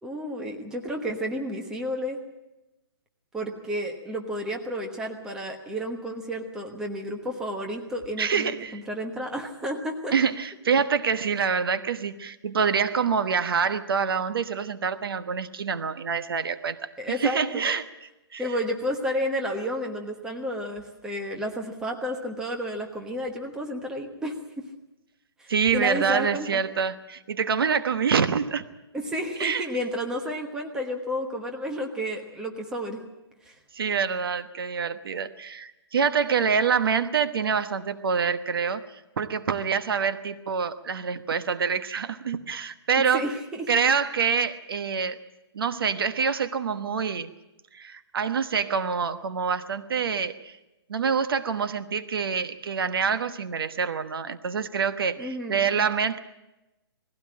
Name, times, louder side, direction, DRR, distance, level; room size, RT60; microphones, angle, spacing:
voice 1, 0.0-2.2 3.3-10.1 17.0-17.6 18.4-24.7 25.4-26.5 28.9-33.0 33.4-33.5 43.1-43.7 55.2-55.7, equal, 5° right, 2 dB, 1.2 m, -31 dB
voice 2, 8.2-8.7 10.1-16.9 17.2-17.8 18.3-18.4 25.5-28.7 29.4-29.7 33.7-43.3 43.7-45.2 45.5-47.3 47.7-50.5 50.9-56.2, right 6 dB, 60° right, 11 dB, 1.2 m, -26 dB
20.0 x 16.0 x 8.7 m, 0.97 s
hypercardioid pair, 165°, 14 cm